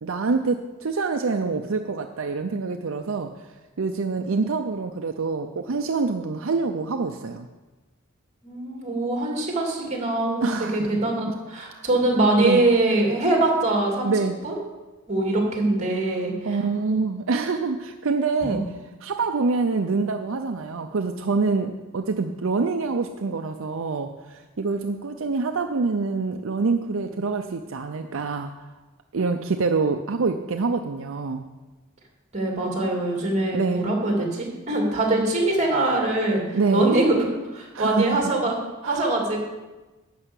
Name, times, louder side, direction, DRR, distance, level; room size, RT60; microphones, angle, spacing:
voice 1, 0.0-3.3 3.8-7.5 10.4-11.0 12.4-12.6 14.0-14.3 16.4-18.6 19.0-28.5 29.1-31.5 33.5-33.9 36.5-36.9 37.7-38.2 38.8-39.1, right 4 dB, 70° right, 5 dB, 0.6 m, -26 dB
voice 2, 8.4-14.1 14.4-14.6 15.1-16.6 18.5-18.6 32.3-37.1 37.5-38.6 38.8-39.4, right 2 dB, 35° right, 0 dB, 2.9 m, -23 dB
12.0 x 5.6 x 8.1 m, 1.2 s
head